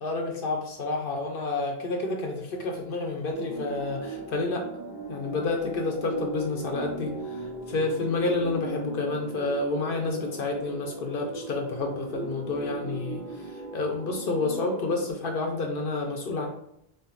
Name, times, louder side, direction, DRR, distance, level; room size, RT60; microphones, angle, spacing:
voice 1, 0.0-4.7 5.1-16.5, left 3 dB, 60° left, 2 dB, 0.8 m, -29 dB
sound 1, 3.3-15.1, right 3 dB, 65° right, 1.5 m, -38 dB
4.2 x 2.5 x 2.4 m, 0.77 s
omnidirectional pair, 1.1 m